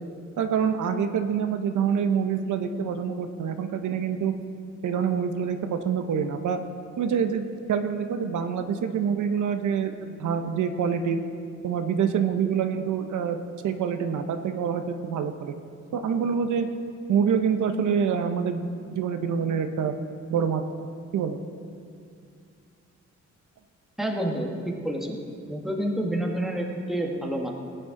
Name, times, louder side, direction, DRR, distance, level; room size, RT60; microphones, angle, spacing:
voice 1, 0.4-4.3 4.8-6.6 7.0-11.2 11.6-13.4 13.6-15.5 15.9-16.7 17.1-18.7 18.9-19.9 20.3-20.6 21.1-21.4, right 7 dB, 90° right, 7 dB, 0.8 m, -26 dB
voice 2, 24.0-25.2 25.5-27.5, right 1 dB, ahead, 0 dB, 1.3 m, -28 dB
19.0 x 9.2 x 3.7 m, 2.4 s
wide cardioid pair, 150°, 29 cm